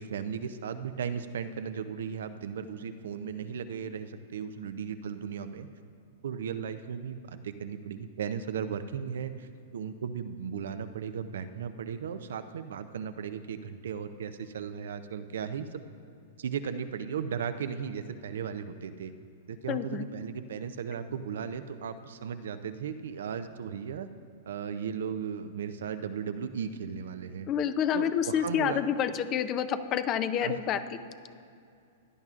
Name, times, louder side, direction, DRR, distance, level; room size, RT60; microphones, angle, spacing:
voice 1, 0.0-5.7 6.2-9.5 9.7-15.8 16.4-19.1 19.5-24.1 24.5-27.5 27.9-28.8 30.4-30.6, right 7 dB, 75° right, 10 dB, 0.5 m, -36 dB
voice 2, 19.7-20.0 27.5-30.8, left 9 dB, 35° left, 11 dB, 0.6 m, -28 dB
16.0 x 10.5 x 2.5 m, 2.4 s
hypercardioid pair, 120°, 0 cm